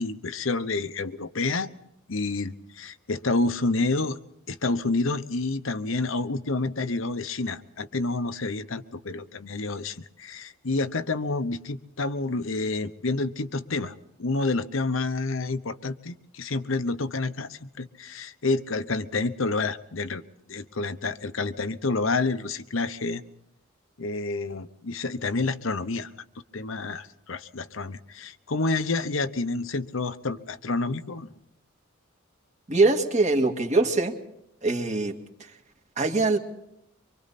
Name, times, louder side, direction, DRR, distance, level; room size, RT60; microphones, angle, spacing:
voice 1, 0.0-1.7 2.1-4.2 4.5-20.2 20.5-23.2 24.0-26.1 26.5-31.3, left 3 dB, 65° left, 11 dB, 1.0 m, -29 dB
voice 2, 32.7-34.2 34.6-35.1 35.4-35.5 36.0-36.4, right 3 dB, 35° right, 4 dB, 2.1 m, -23 dB
25.0 x 25.0 x 4.2 m, 0.80 s
head